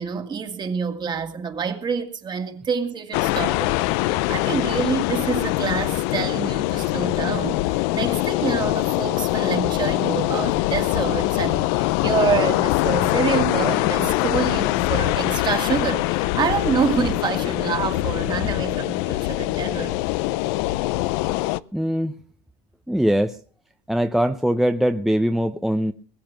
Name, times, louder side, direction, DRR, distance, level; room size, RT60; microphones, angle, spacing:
voice 1, 0.0-20.0, right 6 dB, 35° right, 2.3 m, -27 dB
sound 1, 3.1-21.6, left 18 dB, 75° left, 0.6 m, -23 dB
voice 2, 21.7-22.1 22.9-23.4 23.9-25.9, equal, ahead, 0.7 m, -21 dB
21.0 x 8.7 x 6.1 m
supercardioid pair, 100°, 14 cm